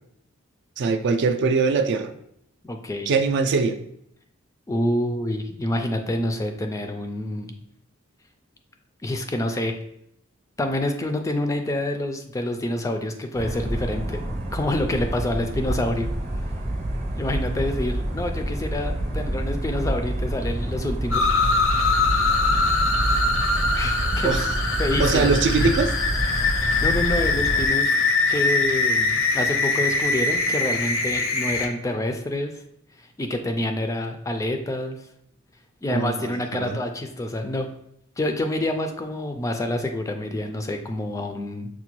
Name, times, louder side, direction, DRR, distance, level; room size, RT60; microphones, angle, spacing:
voice 1, 0.8-2.1 3.1-3.8 24.2-24.5 25.0-25.9 35.9-36.8, right 4 dB, 60° right, 7 dB, 0.4 m, -22 dB
voice 2, 2.6-3.1 4.7-7.5 9.0-9.7 10.6-14.2 14.5-16.1 17.2-21.3 23.7-24.4 24.8-25.7 26.4-27.9 28.3-32.6 33.0-35.0 35.8-37.7 38.2-41.7, left 1 dB, 15° left, 5 dB, 0.3 m, -27 dB
sound 1, 13.3-27.7, right 1 dB, 35° right, 0.7 m, -28 dB
sound 2, 21.1-31.7, left 3 dB, 70° left, 0.5 m, -23 dB
5.9 x 2.2 x 2.9 m, 0.74 s
head